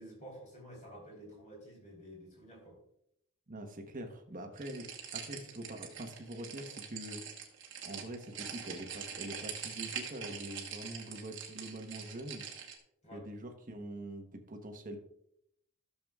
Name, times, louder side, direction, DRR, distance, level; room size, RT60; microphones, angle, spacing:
voice 1, 0.0-2.8 13.0-13.2, equal, 35° left, -2 dB, 3.6 m, -51 dB
voice 2, 3.5-7.2 7.8-12.4 13.1-15.0, right 1 dB, 40° right, 4 dB, 1.1 m, -44 dB
sound 1, 4.6-12.8, right 7 dB, 60° right, 1.4 m, -44 dB
14.0 x 7.0 x 2.4 m, 0.74 s
head